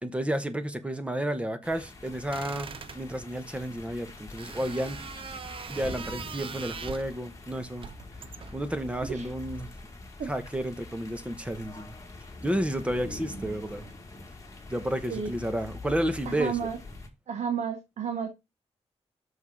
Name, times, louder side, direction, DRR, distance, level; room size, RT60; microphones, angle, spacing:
voice 1, 0.0-5.0 5.7-7.9 8.5-9.7 10.3-12.0 12.4-13.8 14.7-16.7, right 1 dB, 10° right, 1.0 m, -31 dB
sound 1, 1.6-17.1, left 2 dB, 30° left, 1.7 m, -44 dB
sound 2, 2.3-3.0 4.4-7.2 7.8-8.7, right 6 dB, 50° right, 0.6 m, -41 dB
voice 2, 16.3-16.8 17.3-18.3, right 7 dB, 85° right, 1.0 m, -31 dB
6.4 x 5.2 x 5.2 m
wide cardioid pair, 155°, 11 cm